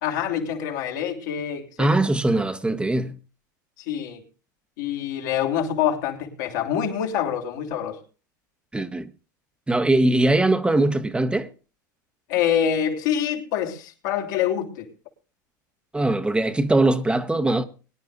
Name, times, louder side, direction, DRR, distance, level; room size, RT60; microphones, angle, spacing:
voice 1, 0.0-2.0 3.9-4.2 4.8-8.0 12.3-14.9, left 9 dB, 70° left, 3.3 m, -26 dB
voice 2, 1.8-3.2 8.7-9.1 9.7-11.5 15.9-17.7, right 2 dB, 10° right, 1.1 m, -21 dB
23.0 x 10.5 x 2.5 m
hypercardioid pair, 90°, 10 cm